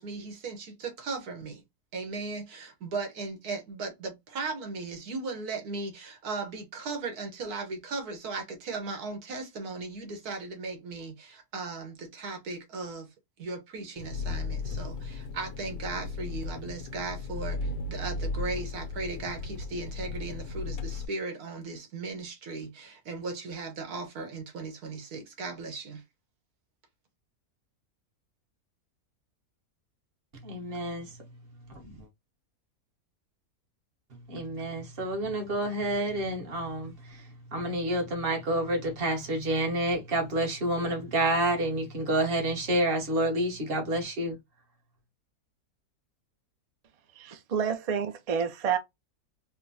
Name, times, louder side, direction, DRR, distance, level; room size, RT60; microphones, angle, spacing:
voice 1, 0.0-1.6 1.9-13.1 13.4-26.0, right 3 dB, 85° right, 1.6 m, -37 dB
Engine, 14.0-21.1, left 3 dB, 85° left, 1.2 m, -35 dB
voice 2, 30.3-32.1 34.1-44.4, right 1 dB, 40° right, 1.3 m, -29 dB
voice 3, 47.2-48.8, right 7 dB, 60° right, 0.3 m, -29 dB
4.3 x 2.1 x 2.7 m
omnidirectional pair, 1.6 m